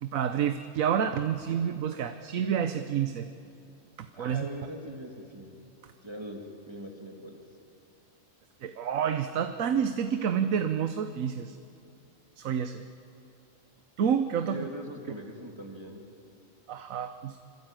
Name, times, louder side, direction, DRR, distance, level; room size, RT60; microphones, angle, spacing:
voice 1, 0.0-3.3 4.0-4.5 8.6-11.6 12.4-12.8 14.0-14.7 16.7-17.4, right 8 dB, 75° right, 9 dB, 1.2 m, -29 dB
voice 2, 4.1-5.6 6.0-7.4 14.5-16.1, right 1 dB, 20° right, 1 dB, 2.8 m, -41 dB
25.5 x 24.0 x 9.0 m, 2.6 s
omnidirectional pair, 1.4 m